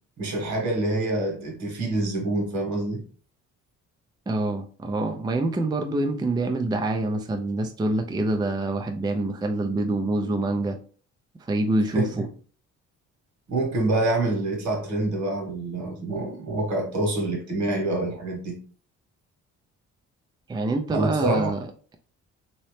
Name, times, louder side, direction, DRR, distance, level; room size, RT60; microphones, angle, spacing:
voice 1, 0.2-3.0 11.9-12.3 13.5-18.5 20.9-21.5, right 2 dB, 65° right, 1.5 m, -26 dB
voice 2, 4.3-10.8 11.5-12.3 20.5-21.7, right 2 dB, 15° right, 0.4 m, -26 dB
3.0 x 2.8 x 3.2 m
cardioid pair, 90°, 30 cm